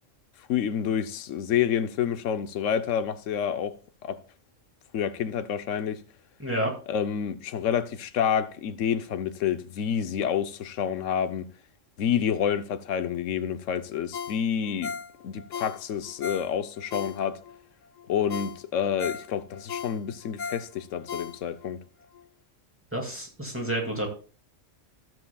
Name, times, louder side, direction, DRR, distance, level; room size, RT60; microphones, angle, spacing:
voice 1, 0.5-3.8 4.0-4.2 4.9-6.0 6.9-11.4 12.0-14.9 15.2-17.4 18.1-21.8, left 8 dB, 80° left, 1.1 m, -28 dB
voice 2, 6.4-6.7 22.9-24.1, right 1 dB, 10° right, 2.2 m, -29 dB
Ringtone, 14.1-17.6 18.0-18.1 18.3-21.7 22.1-22.2, left 6 dB, 50° left, 0.6 m, -37 dB
13.5 x 7.7 x 2.3 m
omnidirectional pair, 1.3 m